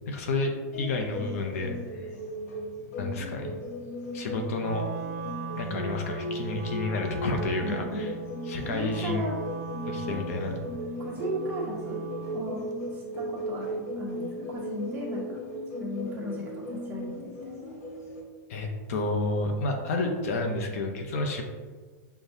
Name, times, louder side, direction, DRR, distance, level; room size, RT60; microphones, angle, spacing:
voice 1, 0.1-2.1 3.0-3.5 4.1-4.8 5.6-8.1 8.5-9.3 9.9-10.5 18.5-21.4, left 2 dB, 60° left, 3 dB, 0.7 m, -30 dB
sound 1, 0.7-18.2, equal, 90° left, 1.1 m, -37 dB
Wind instrument woodwind instrument, 4.6-12.6, right 5 dB, 90° right, 0.5 m, -39 dB
voice 2, 7.6-8.2 8.6-9.4 10.1-10.3 11.0-15.2 15.8-17.7, equal, 20° right, -5 dB, 1.0 m, -36 dB
6.6 x 2.3 x 2.7 m, 1.4 s
supercardioid pair, 160°, 9 cm